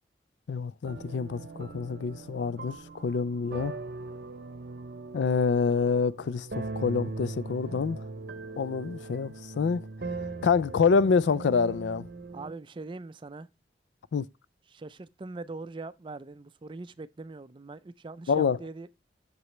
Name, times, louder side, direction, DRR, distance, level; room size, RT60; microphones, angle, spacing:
voice 1, 0.5-3.7 5.1-8.0 8.6-9.8 10.4-12.1 14.1-14.3 18.3-18.6, left 5 dB, 85° left, 0.4 m, -27 dB
sound 1, 0.8-12.5, right 3 dB, 65° right, 0.7 m, -40 dB
voice 2, 12.3-13.5 14.7-18.9, right 3 dB, 30° right, 0.4 m, -42 dB
7.9 x 6.8 x 3.2 m
head